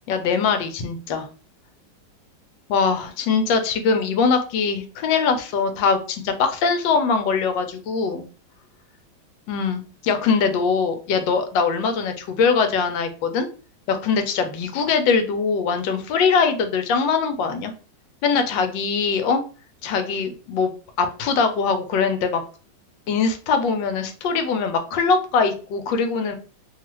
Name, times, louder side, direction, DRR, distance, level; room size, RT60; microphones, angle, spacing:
voice 1, 0.1-1.3 2.7-8.2 9.5-13.5 13.9-17.7 18.2-19.4 19.8-20.7 21.0-22.4 23.1-26.4, left 5 dB, 80° left, 7 dB, 1.3 m, -22 dB
3.0 x 2.4 x 3.0 m, 0.37 s
omnidirectional pair, 2.0 m